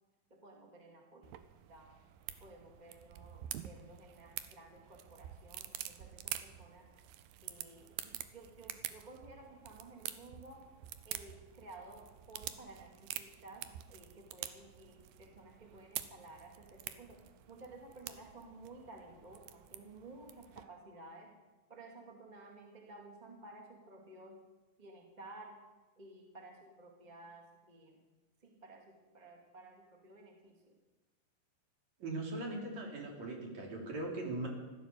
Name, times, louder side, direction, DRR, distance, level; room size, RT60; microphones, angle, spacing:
voice 1, 0.3-1.4 1.7-1.9 2.4-6.9 7.4-10.6 11.0-17.2 17.5-21.4 21.7-24.4 24.8-25.6 25.9-28.0 28.4-30.7, right 2 dB, 15° right, 0 dB, 1.6 m, -54 dB
sound 1, 1.2-20.6, right 13 dB, 90° right, 2.5 m, -47 dB
voice 2, 32.0-34.5, right 2 dB, 55° right, -1 dB, 4.0 m, -40 dB
15.0 x 12.5 x 6.7 m, 1.2 s
omnidirectional pair, 4.1 m